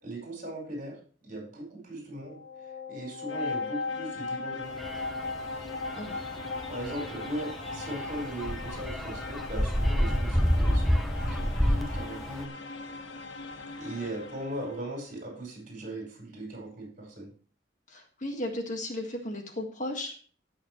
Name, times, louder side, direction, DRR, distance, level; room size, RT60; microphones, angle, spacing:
voice 1, 0.0-4.8 6.7-12.6 13.8-17.3, right 1 dB, 40° right, 1 dB, 5.0 m, -39 dB
sound 1, 2.1-14.9, left 4 dB, 75° left, 1.4 m, -38 dB
sound 2, 4.8-12.4, equal, ahead, 0.6 m, -29 dB
voice 2, 17.9-20.2, left 1 dB, 40° left, 3 dB, 1.8 m, -35 dB
17.0 x 6.5 x 3.1 m, 0.40 s
head